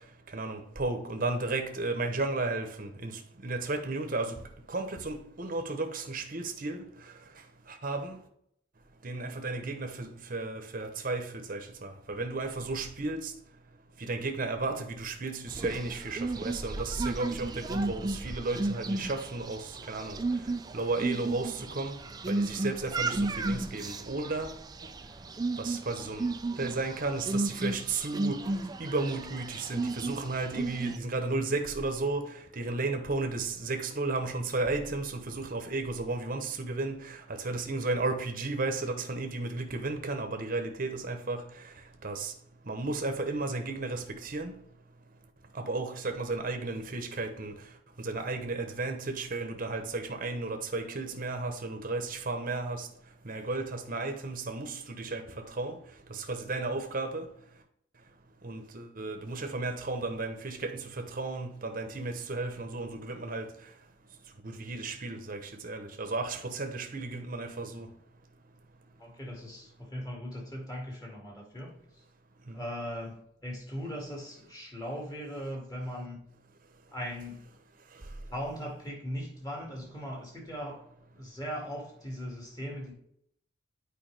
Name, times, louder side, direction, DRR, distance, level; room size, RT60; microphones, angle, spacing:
voice 1, 0.3-4.4 4.7-6.9 7.8-8.2 9.0-13.3 14.0-20.2 20.7-22.0 22.3-24.5 25.6-26.3 26.6-28.4 28.8-41.4 42.0-42.3 42.7-44.5 45.5-47.5 48.0-52.9 53.2-55.8 56.1-57.3 58.4-63.5 64.4-67.9 72.5-72.6, right 3 dB, 45° right, 1.0 m, -34 dB
sound 1, 15.5-31.0, right 2 dB, 20° right, 0.4 m, -34 dB
voice 2, 69.0-71.8 72.5-76.2 76.9-77.4 78.3-80.8 81.1-82.9, equal, 20° left, 2.4 m, -39 dB
9.0 x 4.9 x 3.5 m
head